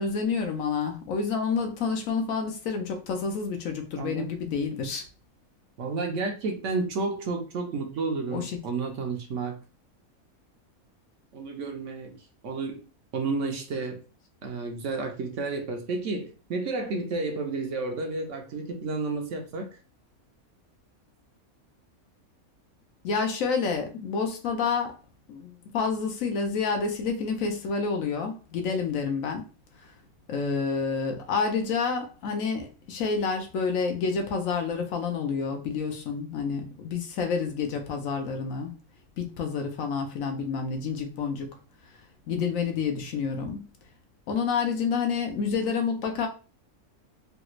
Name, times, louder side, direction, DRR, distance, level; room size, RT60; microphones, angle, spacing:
voice 1, 0.0-5.0 8.3-8.5 23.0-25.0 25.3-29.4 30.3-38.7 39.2-41.5 42.3-43.7 44.3-46.3, left 5 dB, 70° left, 1.0 m, -29 dB
voice 2, 4.0-4.3 5.8-9.6 11.3-12.8 13.1-14.0 14.4-19.8, right 3 dB, 65° right, 0.9 m, -31 dB
3.3 x 2.3 x 2.9 m
omnidirectional pair, 1.6 m